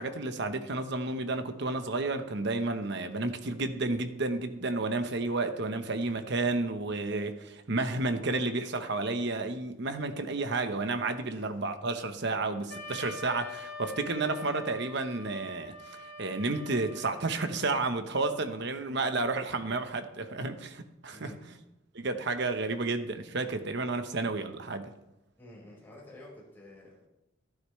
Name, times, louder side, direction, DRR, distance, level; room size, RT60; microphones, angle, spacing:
voice 1, 0.0-21.3 21.9-24.9, right 3 dB, 55° right, 1.0 m, -31 dB
Wind instrument woodwind instrument, 12.7-17.6, left 2 dB, 50° left, 3.8 m, -44 dB
voice 2, 21.1-21.6 25.4-27.1, left 1 dB, 10° left, 5.0 m, -51 dB
13.5 x 11.5 x 3.2 m
head